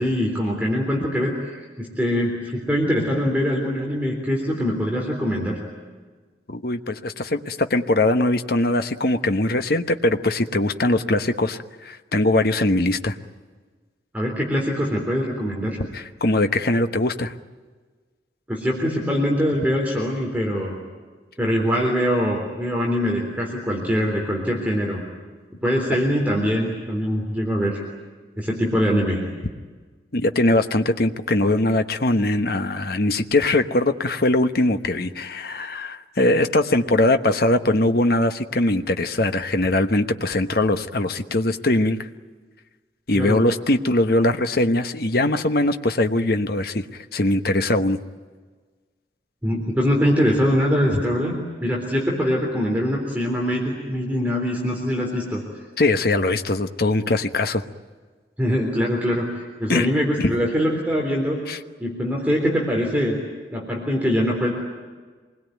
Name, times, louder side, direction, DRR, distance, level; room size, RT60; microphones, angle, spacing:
voice 1, 0.0-5.6 14.1-15.8 18.5-20.8 21.4-25.0 25.6-27.8 28.4-29.2 43.1-43.4 49.4-55.4 58.4-61.4 61.8-63.2 63.5-64.5, equal, 10° right, -1 dB, 3.6 m, -23 dB
voice 2, 6.5-13.2 15.9-17.3 30.1-42.1 43.1-46.9 47.1-48.0 50.9-51.0 55.8-57.6 59.7-59.9 60.2-60.3 61.5-61.6, left 2 dB, 55° left, 8 dB, 1.1 m, -21 dB
26.5 x 21.0 x 9.3 m, 1.4 s
head